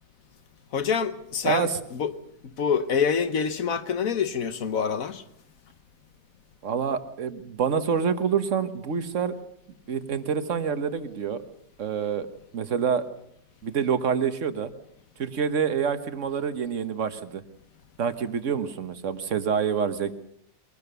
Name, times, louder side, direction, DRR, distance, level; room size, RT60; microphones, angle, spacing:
voice 1, 0.7-2.1 2.6-5.2, left 6 dB, 55° left, 1.4 m, -26 dB
voice 2, 1.4-1.8 6.6-9.3 9.9-11.4 11.8-12.3 12.5-13.0 13.6-14.7 15.2-17.4 18.0-20.1, right 6 dB, 50° right, 1.5 m, -27 dB
22.5 x 19.0 x 6.8 m
omnidirectional pair, 1.8 m